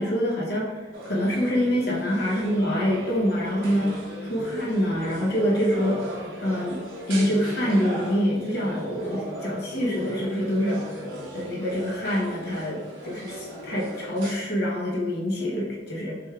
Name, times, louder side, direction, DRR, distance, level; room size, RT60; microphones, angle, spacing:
voice 1, 0.0-6.0 6.4-6.8 7.1-11.0 11.3-16.2, equal, 55° left, -3 dB, 0.9 m, -26 dB
sound 1, 0.9-14.3, right 1 dB, 75° right, 1.1 m, -36 dB
6.0 x 3.4 x 2.4 m, 1.3 s
head